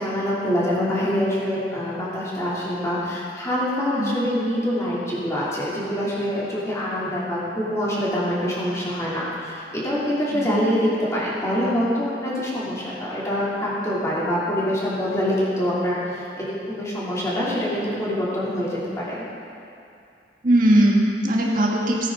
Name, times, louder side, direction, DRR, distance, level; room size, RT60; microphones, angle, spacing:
voice 1, 0.0-19.2, equal, 20° left, -8 dB, 3.0 m, -25 dB
voice 2, 20.4-22.1, right 1 dB, 50° right, -2 dB, 1.6 m, -19 dB
17.0 x 9.7 x 3.9 m, 2.5 s
head